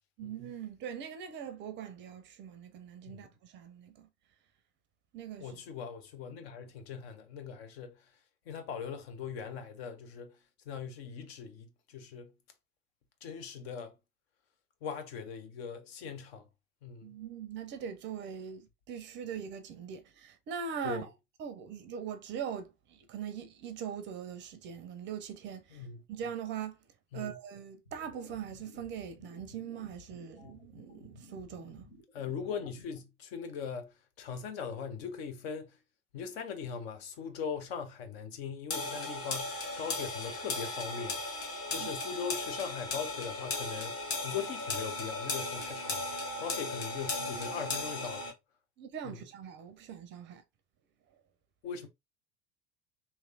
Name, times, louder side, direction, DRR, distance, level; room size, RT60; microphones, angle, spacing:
voice 1, 0.2-4.1 5.1-5.5 17.0-21.1 21.4-25.8 26.1-26.8 27.1-31.9 41.8-41.9 48.8-50.4, right 8 dB, 30° right, 0.5 m, -41 dB
voice 2, 5.4-8.1 8.5-10.4 10.7-12.3 13.2-14.0 14.8-16.5 16.8-17.2 20.8-21.1 25.7-26.0 27.1-27.4 32.1-35.8 36.1-41.2 41.7-48.3 49.0-49.3 51.6-51.9, left 6 dB, 55° left, 0.7 m, -40 dB
sound 1, 27.8-32.8, left 2 dB, 80° left, 1.2 m, -54 dB
sound 2, 38.7-48.3, left 2 dB, 35° left, 1.3 m, -36 dB
3.0 x 2.8 x 2.6 m
figure-of-eight pair, 70°, 37 cm